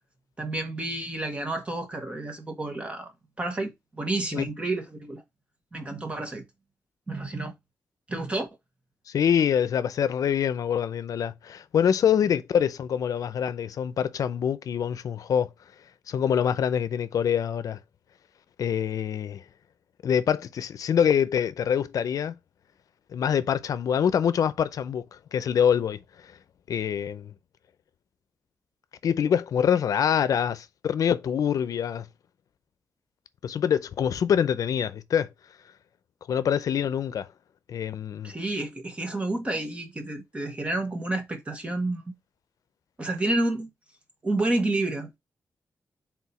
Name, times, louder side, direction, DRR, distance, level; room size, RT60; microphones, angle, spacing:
voice 1, 0.4-3.1 3.4-5.2 5.7-6.4 7.1-7.5 8.1-8.5 38.2-42.1 43.0-43.7 44.2-45.2, right 2 dB, 20° right, 1.3 m, -30 dB
voice 2, 9.1-15.5 16.1-17.8 18.6-19.4 20.0-22.3 23.1-25.0 25.3-26.0 26.7-27.3 29.0-32.1 33.4-35.3 36.3-37.3 37.7-38.3, left 8 dB, 85° left, 0.6 m, -25 dB
4.8 x 3.7 x 5.6 m
wide cardioid pair, 170°, 6 cm